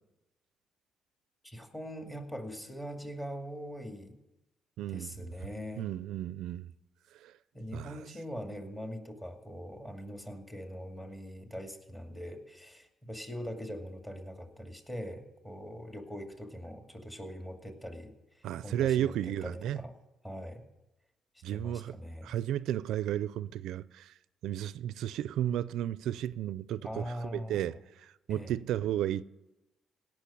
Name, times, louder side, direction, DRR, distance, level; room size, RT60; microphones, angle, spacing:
voice 1, 1.4-4.2 4.9-5.9 7.5-19.9 20.2-20.6 21.5-22.3 26.8-27.8 28.3-28.5, equal, 15° left, 2.3 m, -42 dB
voice 2, 4.8-5.1 5.8-6.7 7.2-7.3 7.7-8.0 18.4-19.8 21.4-22.0 22.2-24.1 24.4-29.2, right 11 dB, 85° right, 0.4 m, -33 dB
17.0 x 6.3 x 10.0 m
cardioid pair, 90°, 0 cm